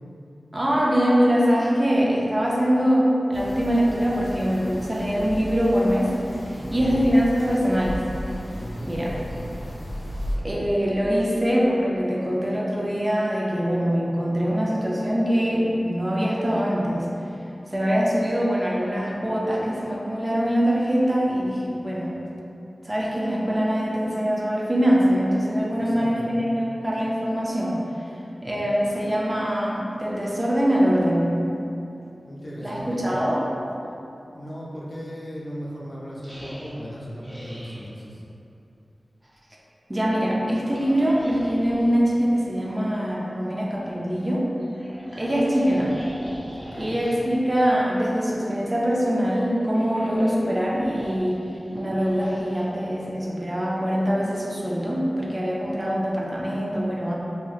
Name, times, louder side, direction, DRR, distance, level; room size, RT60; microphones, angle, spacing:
voice 1, 0.5-8.1 8.9-9.1 10.4-17.1 17.7-22.1 22.8-27.9 28.4-31.5 32.6-33.4 39.9-44.5 45.2-46.0 46.8-51.4 51.7-57.1, equal, 25° right, -5 dB, 0.4 m, -23 dB
sound 1, 3.3-10.3, equal, 80° left, 0.7 m, -35 dB
voice 2, 6.5-7.1 8.5-9.7 25.9-26.4 32.2-33.0 34.3-38.2 46.5-47.0, equal, 40° left, -5 dB, 0.5 m, -37 dB
sound 2, 36.2-37.9 40.6-41.9 44.6-47.2 49.5-53.4, equal, ahead, 0.8 m, -41 dB
3.0 x 2.7 x 2.4 m, 2.8 s
wide cardioid pair, 70°, 0 cm